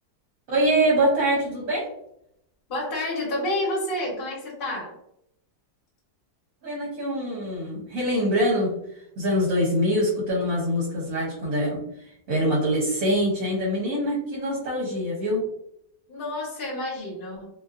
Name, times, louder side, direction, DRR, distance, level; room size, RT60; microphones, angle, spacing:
voice 1, 0.5-1.9 6.6-8.8 9.2-15.5, equal, 60° right, -3 dB, 1.1 m, -24 dB
voice 2, 2.7-4.9 16.1-17.5, left 1 dB, 40° left, -5 dB, 1.1 m, -29 dB
2.7 x 2.4 x 2.3 m, 0.77 s
omnidirectional pair, 1.8 m